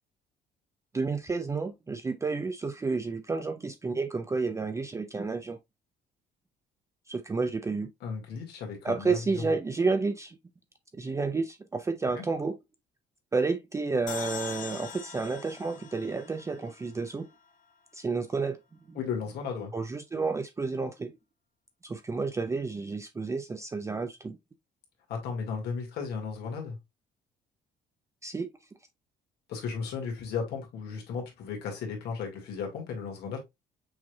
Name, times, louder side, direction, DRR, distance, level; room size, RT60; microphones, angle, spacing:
voice 1, 0.9-5.6 7.1-7.9 8.8-10.4 11.0-12.5 13.3-17.3 17.9-18.6 18.9-19.0 19.7-21.1 21.8-24.4 28.2-28.5, right 4 dB, 15° right, 0.4 m, -30 dB
voice 2, 8.0-9.5 12.2-12.3 19.0-19.7 25.1-26.8 29.5-33.4, left 5 dB, 75° left, 1.9 m, -35 dB
sound 1, 14.1-17.4, left 7 dB, 50° left, 0.8 m, -42 dB
6.1 x 3.2 x 2.2 m
cardioid pair, 110°, 17 cm